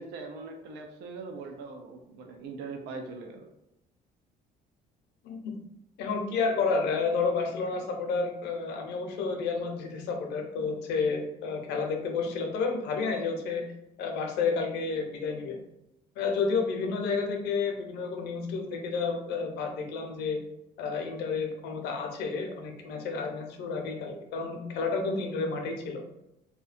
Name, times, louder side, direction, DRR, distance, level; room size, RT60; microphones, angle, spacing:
voice 1, 0.0-3.5, right 4 dB, 85° right, 4 dB, 0.4 m, -41 dB
voice 2, 6.0-13.7 14.0-15.6 16.2-20.4 20.8-26.0, left 4 dB, 80° left, 3 dB, 0.5 m, -30 dB
2.7 x 2.2 x 2.4 m, 0.87 s
cardioid pair, 110°, 17 cm